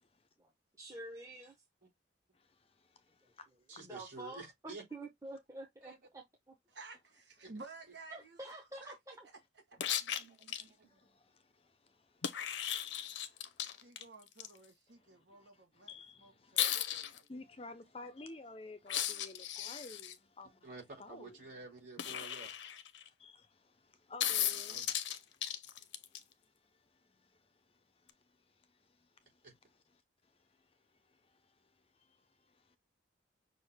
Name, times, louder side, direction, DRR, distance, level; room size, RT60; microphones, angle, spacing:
voice 1, 0.8-1.5 3.8-6.5 8.1-9.3, right 2 dB, 15° right, 0.9 m, -48 dB
voice 2, 2.3-3.5 10.5-13.9 14.9-20.7 21.0-21.4 23.1-24.8 25.3-29.5 30.2-32.8, left 2 dB, 30° left, 0.5 m, -55 dB
voice 3, 3.7-4.8 5.8-6.0 7.4-7.5 9.8-11.0 20.6-22.5 24.7-24.9 29.4-29.5, right 3 dB, 45° right, 3.8 m, -51 dB
voice 4, 6.7-8.9 9.7-10.0 13.8-15.9 16.2-17.3, right 3 dB, 70° right, 1.2 m, -54 dB
sound 1, 9.8-10.6 12.2-14.5 16.6-17.2 18.9-20.1 22.0-23.1 24.2-26.2 28.1-28.2, left 10 dB, 75° left, 0.6 m, -36 dB
6.3 x 2.5 x 3.4 m
head